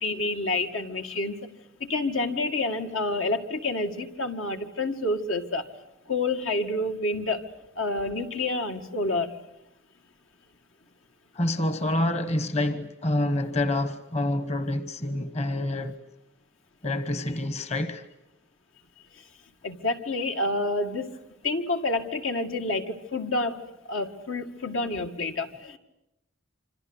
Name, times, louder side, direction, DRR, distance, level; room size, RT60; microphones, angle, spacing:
voice 1, 0.0-1.4 1.8-5.7 6.1-7.5 7.8-9.4 19.6-21.2 21.4-23.6 23.9-25.8, left 2 dB, 80° left, 2.2 m, -28 dB
voice 2, 11.3-16.0 16.8-18.0, left 1 dB, 35° left, 1.2 m, -27 dB
26.5 x 26.0 x 8.1 m
head